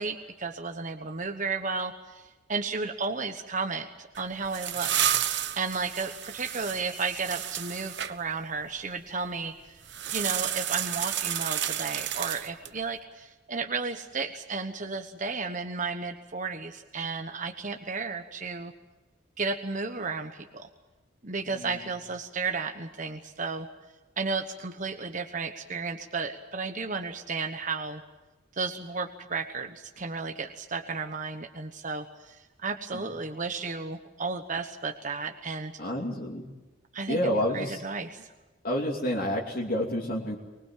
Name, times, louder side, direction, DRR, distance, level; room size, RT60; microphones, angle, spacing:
voice 1, 0.0-4.9 5.6-9.8 10.1-18.7 19.4-20.7 21.2-23.7 24.2-28.0 28.5-35.7 36.9-37.2 37.5-38.3, right 4 dB, 40° right, 5 dB, 1.2 m, -33 dB
sound 1, 4.1-8.1 9.9-12.8, right 11 dB, 60° right, 1.0 m, -31 dB
voice 2, 21.4-21.8 32.9-33.0 35.8-36.5 37.1-37.8 38.6-40.4, equal, 50° left, -3 dB, 2.9 m, -29 dB
24.5 x 21.0 x 7.6 m, 1.2 s
head